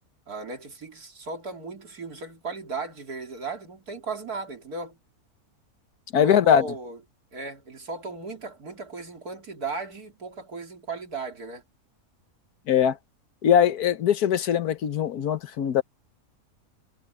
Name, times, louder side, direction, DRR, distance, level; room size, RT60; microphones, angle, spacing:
voice 1, 0.3-5.0 6.1-7.0 7.3-11.6, right 4 dB, 90° right, 3.5 m, -36 dB
voice 2, 6.1-6.6 12.7-13.0 13.4-15.8, left 8 dB, 85° left, 1.5 m, -21 dB
omnidirectional pair, 1.6 m